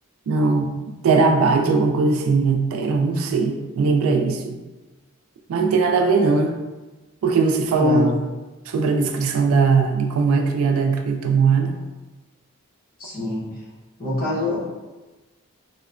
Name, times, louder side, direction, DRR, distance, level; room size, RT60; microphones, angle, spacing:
voice 1, 0.3-0.7 1.0-4.6 5.5-6.5 7.2-8.1 8.7-11.8, right 4 dB, 80° right, 4 dB, 0.3 m, -19 dB
voice 2, 7.7-8.1 13.0-13.5 14.0-14.6, left 1 dB, 40° left, -7 dB, 0.9 m, -25 dB
2.9 x 2.1 x 2.4 m, 1.2 s
head